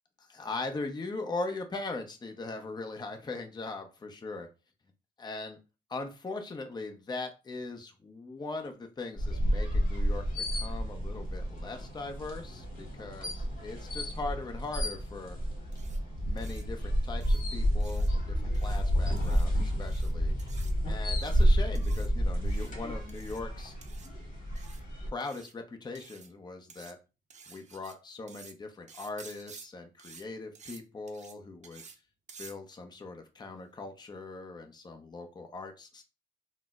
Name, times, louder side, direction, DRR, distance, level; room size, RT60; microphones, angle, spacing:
voice 1, 0.2-4.5 5.2-5.6 5.9-10.2 10.5-15.4 16.3-20.4 20.8-23.7 25.1-27.0 27.5-31.8 32.4-36.0, left 3 dB, 20° left, 5 dB, 0.6 m, -40 dB
sound 1, 9.2-25.1, equal, 45° left, 1.4 m, -30 dB
sound 2, 15.7-16.0 16.4-16.6 17.2-17.4 17.8-18.1 18.5-18.8 19.2-19.5 19.8-20.1 20.4-20.7 21.1-21.4 21.7-22.1 22.4-22.7 23.1-23.4 23.8-24.1 24.6-24.8 25.2-25.5 25.9-26.3 26.7-26.9 27.3-27.9 28.3-28.5 28.9-29.7 30.0-30.2 30.5-30.8 31.1-31.3 31.6-32.0 32.3-32.5, right 5 dB, 35° right, 0.5 m, -52 dB
3.8 x 2.0 x 2.3 m, 0.30 s
cardioid pair, 90°, 20 cm